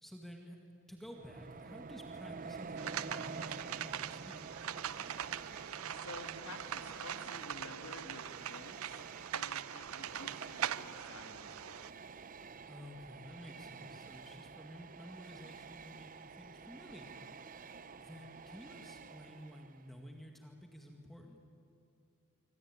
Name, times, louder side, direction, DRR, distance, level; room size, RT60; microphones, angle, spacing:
voice 1, 0.0-0.6 0.9-4.6 12.7-17.2 18.0-21.4, equal, ahead, 2 dB, 1.9 m, -52 dB
Train, 1.1-20.0, right 4 dB, 40° right, 0.7 m, -49 dB
sound 1, 2.8-11.9, right 9 dB, 80° right, 0.6 m, -42 dB
voice 2, 5.9-9.0 9.3-11.8, left 2 dB, 80° left, 5 dB, 2.6 m, -52 dB
26.0 x 25.0 x 8.8 m, 2.8 s
head